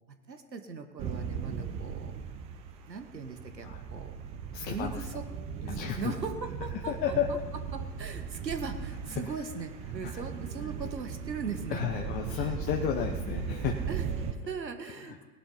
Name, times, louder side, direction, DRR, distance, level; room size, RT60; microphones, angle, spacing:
voice 1, 0.1-2.2 2.9-4.2 4.6-5.3 5.6-7.4 7.7-12.6 13.9-15.2, right 5 dB, 80° right, 7 dB, 1.7 m, -40 dB
sound 1, 1.0-14.3, right 6 dB, 15° right, 0.4 m, -37 dB
voice 2, 4.5-4.9 5.7-6.1 6.9-7.4 10.0-10.2 11.7-13.7, left 9 dB, 20° left, 3 dB, 0.7 m, -32 dB
19.5 x 11.5 x 4.0 m, 1.2 s
figure-of-eight pair, 105°, 50 cm